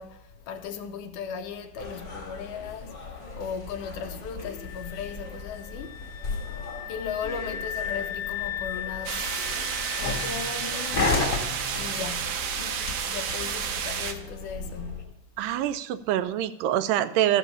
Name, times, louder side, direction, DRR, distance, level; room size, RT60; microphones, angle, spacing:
voice 1, 0.0-6.3 6.9-9.5 10.0-11.4 11.8-15.2, left 6 dB, 80° left, 2.0 m, -37 dB
sound 1, 1.8-15.0, left 3 dB, 40° left, 1.4 m, -35 dB
sound 2, 4.6-11.4, left 10 dB, 60° left, 1.8 m, -37 dB
sound 3, 9.1-14.1, right 7 dB, 75° right, 1.5 m, -31 dB
voice 2, 15.4-17.4, right 12 dB, 90° right, 2.2 m, -25 dB
13.5 x 5.3 x 5.5 m
omnidirectional pair, 3.8 m